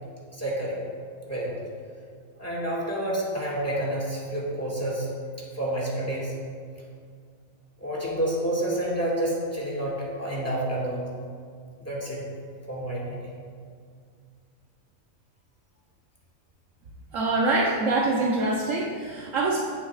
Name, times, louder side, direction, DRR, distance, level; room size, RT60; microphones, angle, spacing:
voice 1, 0.3-0.8 1.3-1.6 2.4-5.1 5.5-6.3 7.8-11.1 11.8-12.3 12.7-13.2, right 1 dB, 10° left, -5 dB, 1.9 m, -29 dB
voice 2, 17.1-19.6, right 2 dB, 70° right, -4 dB, 1.2 m, -24 dB
15.5 x 7.1 x 2.4 m, 2.2 s
omnidirectional pair, 1.4 m